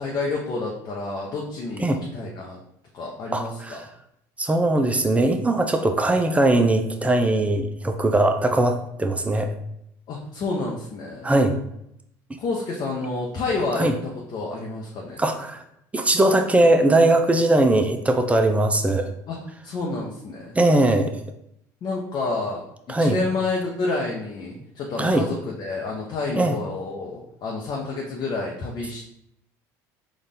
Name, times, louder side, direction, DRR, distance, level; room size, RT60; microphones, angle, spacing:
voice 1, 0.0-2.6 2.9-3.8 10.1-11.3 12.4-15.2 19.3-19.4 19.6-20.6 21.8-22.6 23.0-29.0, left 3 dB, 50° left, -2 dB, 0.7 m, -29 dB
voice 2, 3.3-3.8 4.4-9.5 11.2-11.5 13.8-13.9 15.2-15.6 15.9-19.1 20.5-21.2 22.9-23.2 25.0-25.3 26.3-26.6, right 2 dB, 15° right, 6 dB, 0.5 m, -20 dB
4.1 x 2.5 x 3.5 m, 0.76 s
hypercardioid pair, 75°, 9 cm